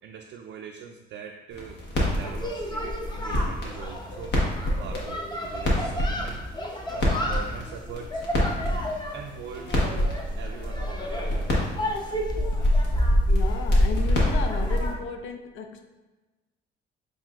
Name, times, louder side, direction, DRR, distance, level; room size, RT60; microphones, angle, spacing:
voice 1, 0.0-4.4 4.8-8.2 9.1-11.4, right 7 dB, 70° right, 1 dB, 0.4 m, -42 dB
sound 1, 1.5-14.9, left 1 dB, 60° left, 1.3 m, -29 dB
sound 2, 2.2-14.9, equal, 20° left, 0.7 m, -28 dB
voice 2, 12.4-13.0 13.3-15.9, left 6 dB, 75° left, 6 dB, 0.4 m, -35 dB
7.3 x 2.6 x 2.4 m, 1.2 s
cardioid pair, 90°, 20 cm